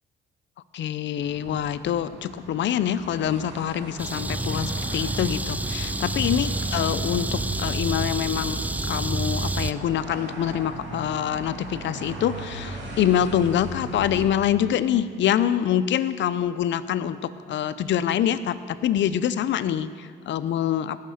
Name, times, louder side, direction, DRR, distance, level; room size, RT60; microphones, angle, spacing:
voice 1, 0.7-21.0, left 10 dB, 70° left, 13 dB, 0.6 m, -25 dB
sound 1, 1.2-14.3, right 2 dB, 70° right, 2.4 m, -39 dB
sound 2, 4.0-9.7, right 2 dB, 10° right, 0.4 m, -28 dB
18.5 x 6.7 x 6.4 m, 2.1 s
cardioid pair, 90°, 20 cm